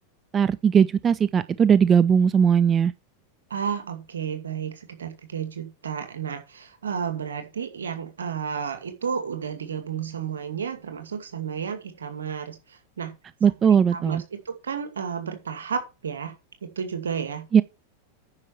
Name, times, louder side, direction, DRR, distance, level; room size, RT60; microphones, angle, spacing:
voice 1, 0.3-2.9 13.4-14.2 17.5-17.6, right 7 dB, 25° right, 0.5 m, -19 dB
voice 2, 3.5-13.2 13.7-16.3 16.6-17.5, right 7 dB, 70° right, 2.3 m, -32 dB
9.7 x 6.3 x 5.9 m
figure-of-eight pair, 90°, 0 cm